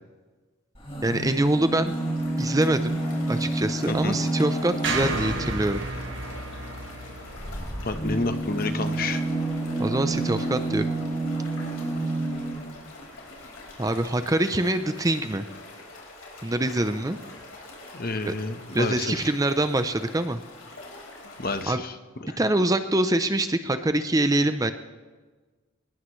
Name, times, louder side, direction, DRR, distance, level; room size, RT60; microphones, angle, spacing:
sound 1, 0.7-5.6 7.3-12.7 13.7-13.8 14.0-14.1, right 2 dB, 25° left, 4.2 m, -29 dB
voice 1, 1.0-1.9 2.4-3.0 3.3-5.8 9.8-10.8 13.8-15.4 16.4-17.2 18.2-18.3 18.7-20.4 21.7-21.8 22.4-24.7, right 1 dB, 15° right, 9 dB, 0.5 m, -24 dB
sound 2, 1.9-21.6, left 2 dB, 85° left, 4.8 m, -45 dB
voice 2, 3.9-4.2 7.8-9.2 17.9-19.3 21.4-21.9 22.2-22.4, left 3 dB, 45° left, 8 dB, 1.1 m, -30 dB
sound 3, 4.8-9.1, right 3 dB, 60° right, 2.0 m, -33 dB
20.5 x 19.5 x 3.2 m, 1.3 s
head